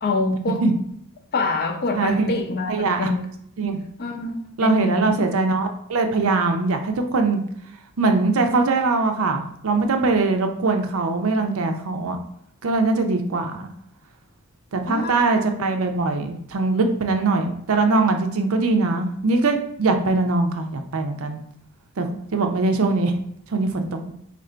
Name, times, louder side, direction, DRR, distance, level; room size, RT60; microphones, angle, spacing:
voice 1, 0.0-0.6 1.3-3.3 4.0-5.2 14.9-15.2, left 3 dB, 45° left, 4 dB, 0.5 m, -26 dB
voice 2, 1.9-2.3 2.7-3.1 3.6-3.8 4.6-7.4 8.0-12.2 12.6-13.7 14.7-21.4 22.0-23.2 23.5-24.1, right 3 dB, 70° right, 6 dB, 0.6 m, -22 dB
3.7 x 2.5 x 4.3 m, 0.70 s
head